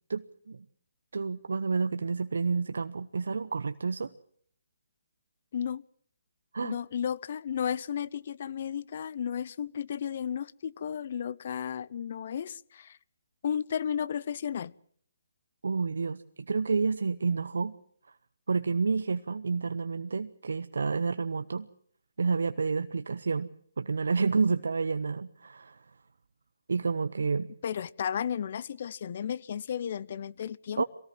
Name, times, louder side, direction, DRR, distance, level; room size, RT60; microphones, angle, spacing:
voice 1, 0.1-0.6 1.1-4.1 6.5-6.8 15.6-17.8 18.5-21.7 22.2-23.5 23.8-25.8 26.7-27.5 30.8-30.9, right 4 dB, 75° right, 0.9 m, -29 dB
voice 2, 5.5-5.8 6.6-13.0 13.4-14.7 27.6-30.8, left 8 dB, 50° left, 0.8 m, -33 dB
24.0 x 18.0 x 7.7 m
hypercardioid pair, 150°, 0 cm